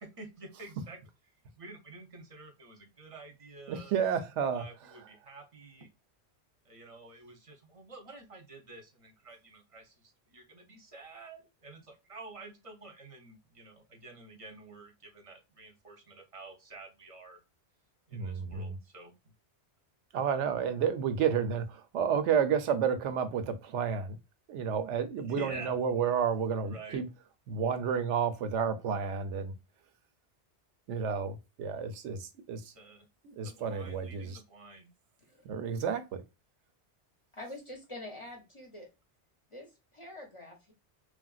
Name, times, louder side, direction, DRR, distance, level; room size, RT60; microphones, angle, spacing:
voice 1, 0.2-1.0 1.6-3.9 4.5-5.9 6.6-17.4 18.1-19.1 25.3-25.8 26.6-27.0 32.7-33.1 33.4-34.9, right 3 dB, 35° right, 0.6 m, -49 dB
voice 2, 3.7-4.6 18.1-18.8 20.1-24.2 24.5-27.1 27.5-29.5 30.9-32.7 33.2-34.4 35.4-36.2, right 7 dB, 90° right, 0.9 m, -31 dB
voice 3, 37.3-38.9 39.5-40.7, left 1 dB, 35° left, 0.6 m, -46 dB
3.1 x 2.4 x 2.3 m
omnidirectional pair, 1.2 m